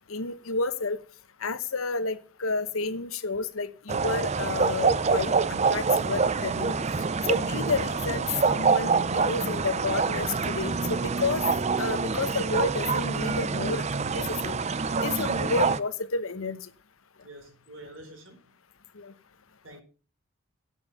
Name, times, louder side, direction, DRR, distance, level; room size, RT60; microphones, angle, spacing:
voice 1, 0.1-1.0 1.4-6.7 7.2-11.4 11.8-14.6 15.0-16.7 18.9-19.1, left 4 dB, 75° left, 0.9 m, -31 dB
sound 1, 3.9-15.8, right 4 dB, 30° right, 0.5 m, -26 dB
voice 2, 17.2-18.4 19.6-19.8, right 1 dB, 60° right, 4.1 m, -46 dB
11.0 x 6.4 x 7.0 m
head